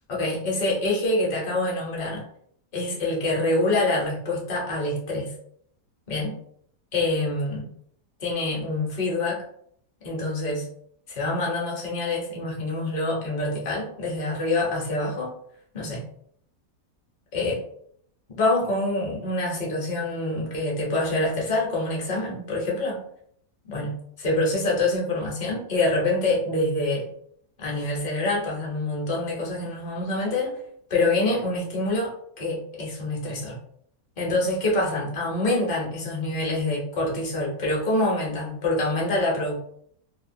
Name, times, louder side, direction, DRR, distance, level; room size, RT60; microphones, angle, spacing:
voice 1, 0.1-2.2 2.7-5.3 6.1-6.3 6.9-7.7 8.2-9.4 10.0-10.7 11.1-15.3 15.7-16.0 17.3-17.6 18.4-23.0 23.6-27.1 27.6-30.6 30.9-32.1 32.4-33.6 34.2-39.6, left 2 dB, 40° left, -3 dB, 0.7 m, -26 dB
2.8 x 2.3 x 2.6 m, 0.67 s
omnidirectional pair, 1.8 m